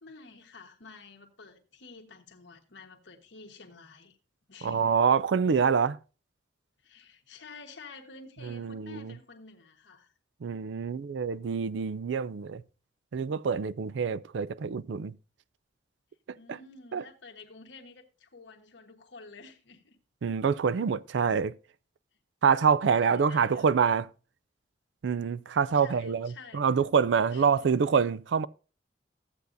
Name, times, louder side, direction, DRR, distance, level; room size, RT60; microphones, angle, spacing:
voice 1, 0.0-4.2 4.5-5.0 6.8-10.1 16.3-20.0 22.9-23.7 25.7-26.8 27.3-27.7, left 4 dB, 70° left, 1.3 m, -50 dB
voice 2, 4.6-6.0 8.5-9.1 10.4-12.6 13.1-15.1 16.9-17.0 20.2-21.5 22.4-24.1 25.0-28.5, right 6 dB, 75° right, 0.4 m, -26 dB
14.0 x 8.1 x 2.6 m
head